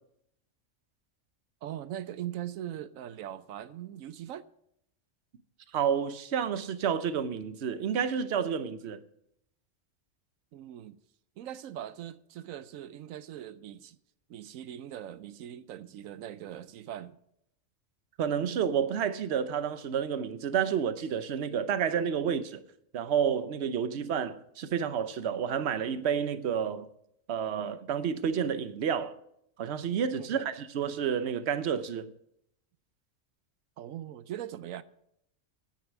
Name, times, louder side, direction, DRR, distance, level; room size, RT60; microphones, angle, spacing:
voice 1, 1.6-4.5 10.5-11.0 11.4-14.0 14.3-17.2 30.2-30.5 33.8-34.8, right 11 dB, 85° right, 1.0 m, -41 dB
voice 2, 5.7-9.0 18.2-22.6 22.9-26.9 27.3-29.2 29.6-32.1, right 7 dB, 60° right, 1.0 m, -30 dB
9.4 x 8.9 x 8.1 m
omnidirectional pair, 1.4 m